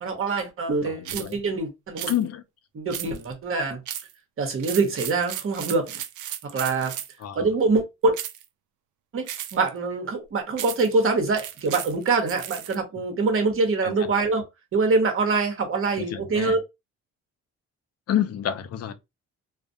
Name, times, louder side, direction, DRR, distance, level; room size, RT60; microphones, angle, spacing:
voice 1, 0.0-2.1 2.7-3.8 4.4-6.0 6.5-7.0 7.3-8.1 9.1-14.4 14.7-16.6, right 3 dB, 45° right, 1.0 m, -24 dB
voice 2, 0.8-1.4 2.1-2.4 7.2-7.4 13.8-14.1 16.0-16.6 18.1-18.9, left 11 dB, 55° left, 0.5 m, -28 dB
sound 1, 1.1-1.3 2.0-2.2 2.9-3.3 3.9-4.1 4.6-7.2 8.1-8.5 9.3-9.7 10.6-10.9 11.4-12.8, right 11 dB, 75° right, 0.5 m, -35 dB
2.4 x 2.1 x 2.6 m
cardioid pair, 90°, 30 cm